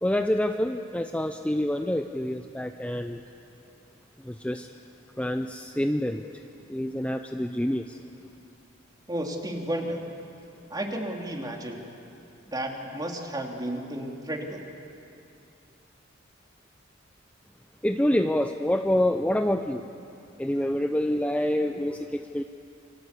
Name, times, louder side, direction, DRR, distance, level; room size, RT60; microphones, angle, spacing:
voice 1, 0.0-3.2 4.2-4.7 5.2-6.2 6.7-8.0 17.8-19.9 20.4-22.4, left 1 dB, 5° left, 6 dB, 0.6 m, -27 dB
voice 2, 9.1-10.0 10.7-11.8 12.5-14.6, right 1 dB, 20° right, 1 dB, 2.9 m, -32 dB
29.0 x 23.5 x 8.3 m, 2.6 s
head